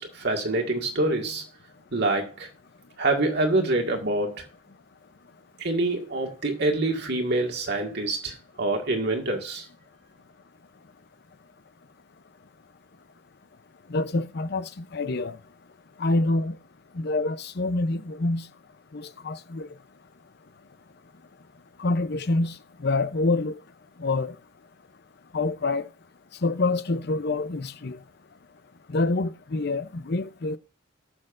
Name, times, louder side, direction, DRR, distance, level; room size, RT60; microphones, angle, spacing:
voice 1, 0.0-1.4 1.9-2.5 3.0-4.4 5.6-9.6, right 2 dB, 60° right, 2.0 m, -26 dB
voice 2, 13.9-15.4 16.0-16.6 16.9-18.4 18.9-19.7 21.8-22.6 22.8-23.6 24.0-24.4 25.3-25.9 26.4-28.0 28.9-30.6, left 2 dB, 60° left, 0.7 m, -26 dB
19.0 x 6.6 x 2.6 m
head